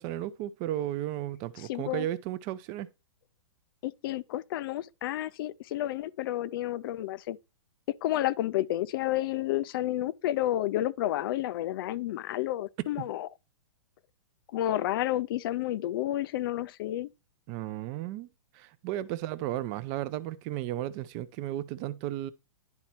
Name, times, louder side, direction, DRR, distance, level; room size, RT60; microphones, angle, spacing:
voice 1, 0.0-2.9 12.8-13.1 17.5-18.3 18.5-22.3, right 13 dB, 30° right, 0.6 m, -34 dB
voice 2, 1.6-2.1 3.8-7.4 7.9-13.3 14.5-17.1, left 14 dB, 45° left, 0.4 m, -30 dB
10.5 x 4.2 x 4.3 m
hypercardioid pair, 145°, 17 cm